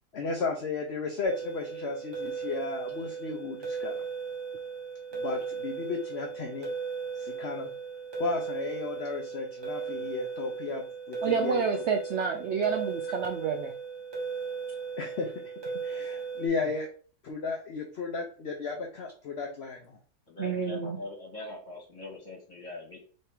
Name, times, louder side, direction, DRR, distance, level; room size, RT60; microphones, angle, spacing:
voice 1, 0.1-4.0 5.1-6.7 7.1-7.7 8.2-11.6 15.0-15.3 15.8-16.9 17.2-20.0, left 4 dB, 60° left, 2 dB, 0.7 m, -34 dB
sound 1, 1.2-16.5, right 5 dB, 20° right, 0.7 m, -36 dB
voice 2, 11.2-13.7 20.4-21.0, right 6 dB, 85° right, 4 dB, 0.6 m, -29 dB
voice 3, 20.3-23.0, left 2 dB, 30° left, -3 dB, 1.8 m, -42 dB
3.5 x 3.2 x 4.4 m, 0.40 s
omnidirectional pair, 1.7 m